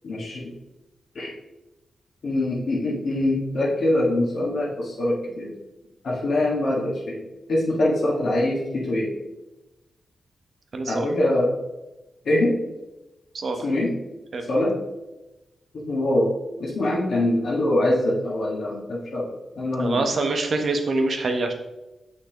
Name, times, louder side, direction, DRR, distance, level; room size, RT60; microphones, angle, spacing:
voice 1, 0.0-0.5 1.2-1.3 2.2-5.5 6.0-7.2 7.5-9.2 10.9-11.5 12.3-12.6 13.6-13.9 14.5-14.7 15.7-16.3 16.6-19.3 19.6-20.1, left 1 dB, 75° left, -5 dB, 1.7 m, -23 dB
voice 2, 10.7-11.1 13.3-13.6 14.3-14.5 19.8-21.5, right 2 dB, 60° right, 5 dB, 1.0 m, -25 dB
6.7 x 5.6 x 3.0 m, 1.0 s
cardioid pair, 50°, 0 cm